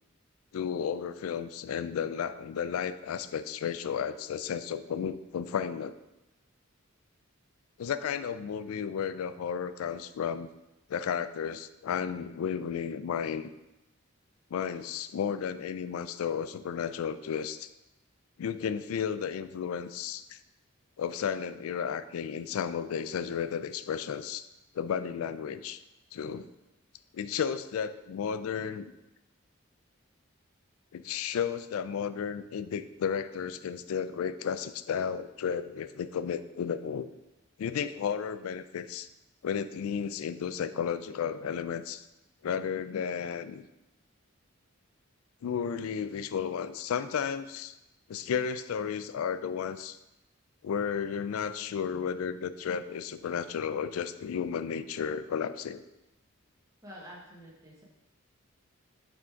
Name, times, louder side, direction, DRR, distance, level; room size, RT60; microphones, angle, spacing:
voice 1, 0.5-6.0 7.8-10.5 10.9-13.5 14.5-17.7 18.4-20.4 21.0-24.4 24.7-25.8 26.1-26.5 27.1-28.9 30.9-37.1 37.6-39.1 39.4-42.0 42.4-43.7 45.4-47.8 48.1-50.0 50.6-55.8, left 7 dB, 80° left, 13 dB, 0.3 m, -33 dB
voice 2, 56.8-57.8, equal, 15° right, -4 dB, 1.1 m, -48 dB
6.1 x 3.5 x 4.5 m, 0.96 s
head